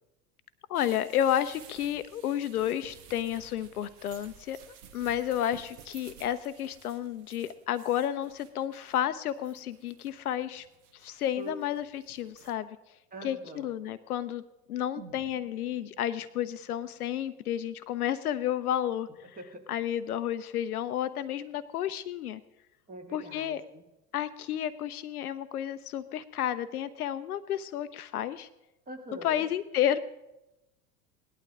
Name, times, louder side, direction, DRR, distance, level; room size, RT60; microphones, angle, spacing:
voice 1, 0.7-10.7 10.9-12.8 13.2-14.4 14.7-19.4 19.7-22.4 23.1-23.6 24.1-28.5 29.2-30.0, left 10 dB, 65° left, 13 dB, 0.7 m, -31 dB
sound 1, 0.7-12.5, right 8 dB, 50° right, 1.3 m, -54 dB
voice 2, 13.1-13.7 19.4-19.6 22.9-23.8 28.9-29.4, right 2 dB, 15° right, 3 dB, 2.2 m, -44 dB
sound 2, 15.0-18.9 19.2-19.3, right 6 dB, 70° right, 1.7 m, -55 dB
18.0 x 11.5 x 3.6 m, 0.93 s
figure-of-eight pair, 80°, 48 cm